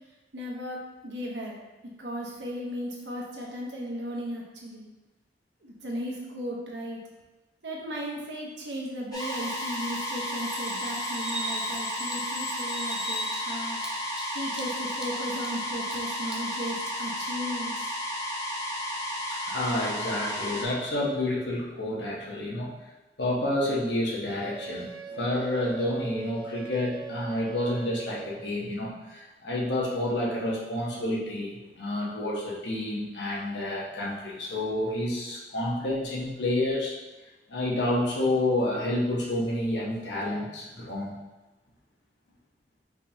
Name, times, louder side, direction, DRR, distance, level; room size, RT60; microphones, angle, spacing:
voice 1, 0.3-1.5 2.0-4.8 5.6-7.0 7.6-14.1 14.3-17.8, equal, 80° right, -2 dB, 1.0 m, -36 dB
sound 1, 9.1-20.6, equal, 20° left, 0.8 m, -33 dB
Bird vocalization bird call bird song, 9.2-16.7, equal, 5° right, 0.4 m, -39 dB
voice 2, 19.5-22.7 23.2-36.9 37.5-41.1, left 1 dB, 75° left, -4 dB, 1.1 m, -29 dB
Wind instrument woodwind instrument, 24.4-28.5, right 4 dB, 50° right, 0.8 m, -41 dB
4.9 x 3.6 x 2.9 m, 1.2 s
head